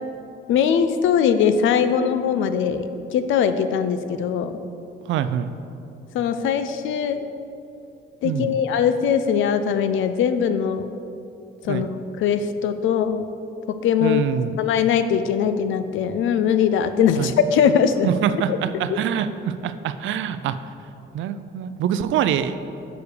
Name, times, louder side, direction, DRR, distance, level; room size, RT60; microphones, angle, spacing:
voice 1, 0.5-4.6 6.1-7.3 8.2-10.9 11.6-13.3 13.7-14.2 14.6-18.1 18.5-18.6 18.9-19.0, left 7 dB, 80° left, 10 dB, 0.5 m, -21 dB
voice 2, 5.1-5.5 8.2-8.6 11.7-11.9 14.0-14.6 17.1-17.3 18.1-20.6 21.1-22.6, right 9 dB, 75° right, 12 dB, 0.4 m, -25 dB
6.9 x 5.1 x 6.7 m, 2.7 s
cardioid pair, 90°, 20 cm